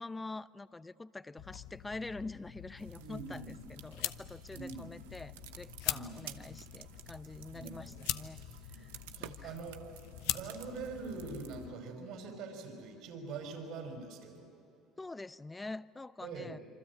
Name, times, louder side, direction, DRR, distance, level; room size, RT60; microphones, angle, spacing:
voice 1, 0.0-8.4 8.7-8.9 9.2-9.5 15.0-16.6, left 2 dB, 15° left, 15 dB, 0.7 m, -45 dB
sound 1, 1.4-11.7, left 14 dB, 80° left, 0.9 m, -43 dB
sound 2, 2.8-11.7, right 13 dB, 90° right, 0.9 m, -53 dB
voice 2, 3.0-3.6 4.5-5.0 5.9-6.5 7.5-8.1 8.7-14.5 16.2-16.6, right 4 dB, 65° right, 4 dB, 5.8 m, -44 dB
26.5 x 24.5 x 8.6 m, 2.7 s
supercardioid pair, 85°, 0 cm